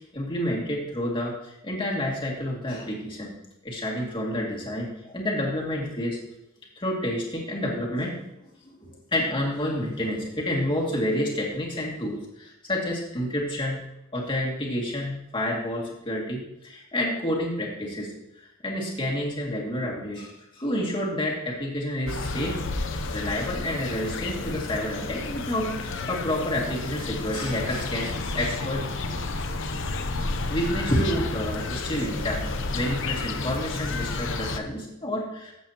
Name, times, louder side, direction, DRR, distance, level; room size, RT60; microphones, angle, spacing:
voice 1, 0.1-3.4 3.6-6.2 6.8-8.2 8.8-13.8 14.1-22.6 23.1-29.1 30.5-35.5, left 1 dB, 25° left, -2 dB, 2.3 m, -29 dB
sound 1, 22.1-34.6, left 3 dB, 65° left, 0.8 m, -31 dB
14.0 x 7.6 x 3.0 m, 0.83 s
head